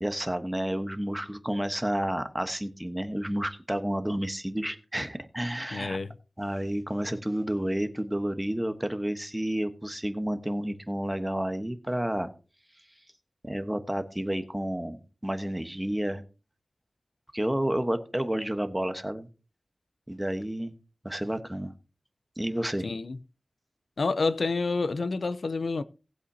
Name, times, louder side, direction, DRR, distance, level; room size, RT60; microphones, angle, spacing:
voice 1, 0.0-6.0 6.4-12.3 13.4-16.2 17.3-19.3 20.1-20.7 21.0-21.7 22.4-22.9, right 1 dB, 10° right, 1.2 m, -30 dB
voice 2, 5.7-6.2 22.8-23.2 24.0-25.8, left 3 dB, 85° left, 0.5 m, -28 dB
18.5 x 8.0 x 2.8 m
wide cardioid pair, 85°, 0 cm